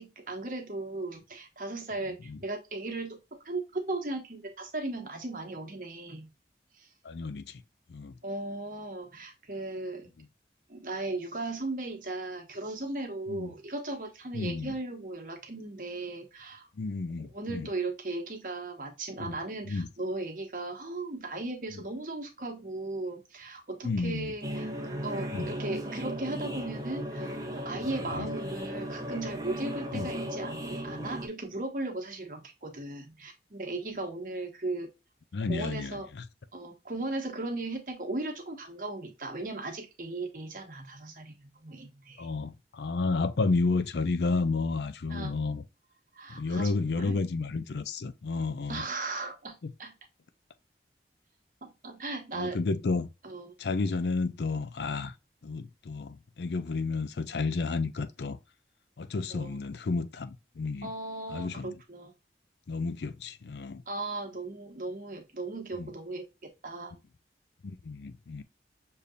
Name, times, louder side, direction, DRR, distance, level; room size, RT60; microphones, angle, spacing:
voice 1, 0.0-3.2 3.4-6.3 6.8-6.9 8.2-10.1 10.7-16.7 17.2-24.7 25.0-34.9 35.5-36.1 36.5-42.3 45.1-45.3 46.1-47.2 48.7-49.9 51.6-52.6 53.2-53.5 59.3-59.6 60.8-62.1 63.9-67.0, right 2 dB, 50° right, 1.1 m, -37 dB
voice 2, 7.0-7.6 7.9-8.1 13.3-13.5 14.3-14.7 16.8-17.7 19.2-19.4 19.7-19.9 21.7-21.8 23.8-24.3 25.3-25.5 28.1-28.3 29.9-30.1 35.3-36.0 42.2-45.6 46.3-48.8 49.6-49.7 52.3-53.1 53.6-55.1 55.4-58.4 59.0-60.9 61.3-61.7 62.7-63.8 65.8-65.9 67.6-68.4, left 3 dB, 75° left, 0.5 m, -31 dB
sound 1, 24.4-31.3, equal, 20° right, 0.7 m, -36 dB
6.6 x 2.8 x 2.4 m
head